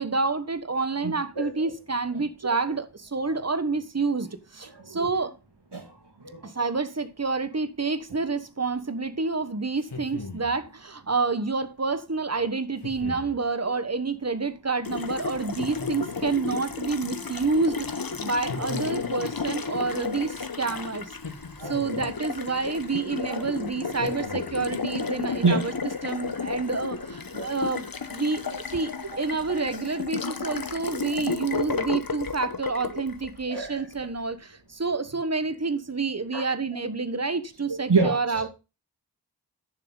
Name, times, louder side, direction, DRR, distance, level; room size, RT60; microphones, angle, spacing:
voice 1, 0.0-5.3 6.4-21.2 21.6-25.7 26.0-38.5, right 4 dB, 40° right, 1.3 m, -28 dB
voice 2, 1.0-1.6 2.1-2.2 4.8-5.1 5.7-6.4 21.6-21.9 23.2-23.4 25.4-25.6 26.7-26.8 27.3-27.5 31.7-31.8 33.5-33.8 36.3-36.4 37.7-38.4, right 4 dB, 85° right, 2.4 m, -27 dB
sound 1, 9.8-10.6 12.8-13.4 15.6-16.4 18.5-19.4 21.2-22.2 24.0-24.8, left 3 dB, 85° left, 2.1 m, -39 dB
Water tap faucet, 14.8-34.0, left 5 dB, 60° left, 1.1 m, -33 dB
10.5 x 7.1 x 3.9 m
wide cardioid pair, 40°, 40 cm